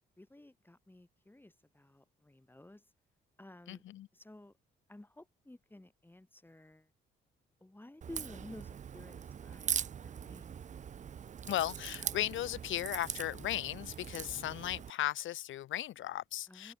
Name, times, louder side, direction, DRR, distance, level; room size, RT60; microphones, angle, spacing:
voice 1, 0.0-2.9 3.4-3.8 4.1-4.6 4.9-6.9 7.6-10.5 16.5-16.8, left 1 dB, 10° left, 7.1 m, -53 dB
voice 2, 3.7-4.1 11.5-16.7, left 13 dB, 75° left, 1.8 m, -36 dB
Crack, 8.0-14.9, right 8 dB, 40° right, 0.6 m, -41 dB
open air
cardioid pair, 90°, 20 cm